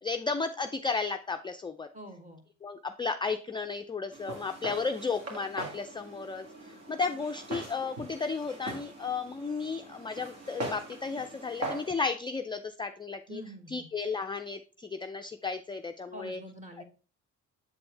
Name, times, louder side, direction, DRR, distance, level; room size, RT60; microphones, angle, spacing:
voice 1, 0.0-1.9 2.6-13.4 13.7-16.4, left 4 dB, 15° left, 6 dB, 0.3 m, -34 dB
voice 2, 1.9-2.4 13.3-13.9 16.1-16.8, right 1 dB, 25° right, 3 dB, 1.7 m, -46 dB
Walk footsteps, 4.1-11.9, right 1 dB, 60° right, 2.0 m, -41 dB
7.7 x 4.4 x 3.3 m, 0.37 s
cardioid pair, 90°, 30 cm